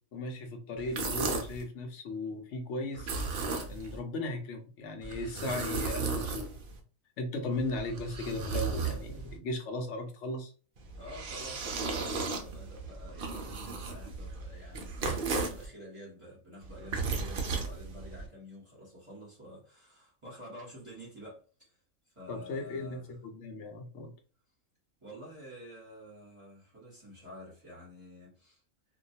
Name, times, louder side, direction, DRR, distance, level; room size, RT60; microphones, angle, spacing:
voice 1, 0.1-6.6 7.2-10.5 22.3-24.1, left 2 dB, 65° left, 0.8 m, -37 dB
sound 1, 0.8-1.6 2.9-4.0 5.0-6.8 7.5-9.4 10.8-15.7 16.6-18.3, right 4 dB, 65° right, 0.5 m, -35 dB
voice 2, 11.0-23.1 25.0-28.6, left 1 dB, 25° right, 0.9 m, -49 dB
2.3 x 2.2 x 2.7 m
omnidirectional pair, 1.5 m